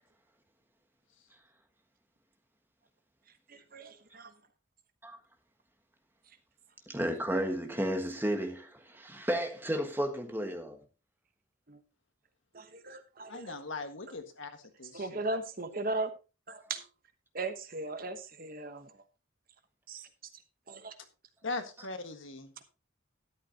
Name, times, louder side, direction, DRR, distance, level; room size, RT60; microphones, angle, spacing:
voice 1, 3.5-4.3 11.7-11.8 12.5-13.5 14.9-16.1 16.5-16.8 17.3-18.9 19.9-20.1 20.7-20.9, right 2 dB, 45° right, 1.1 m, -37 dB
voice 2, 6.9-10.8, equal, 10° right, 1.5 m, -33 dB
voice 3, 13.3-15.2 21.4-22.5, left 3 dB, 70° left, 1.7 m, -40 dB
12.5 x 11.0 x 2.9 m
head